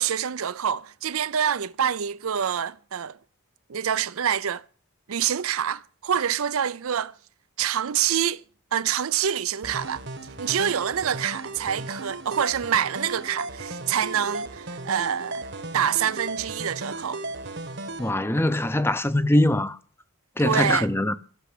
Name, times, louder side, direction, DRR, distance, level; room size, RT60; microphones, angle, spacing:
voice 1, 0.0-3.2 3.7-4.6 5.1-7.1 7.6-8.4 8.7-10.0 10.4-15.4 15.7-17.2 20.4-20.9, right 8 dB, 75° right, 0.5 m, -26 dB
sound 1, 9.6-18.1, right 2 dB, 55° right, 1.2 m, -36 dB
voice 2, 18.0-19.8 20.4-21.2, left 1 dB, 10° left, 0.6 m, -22 dB
15.5 x 7.0 x 7.8 m
head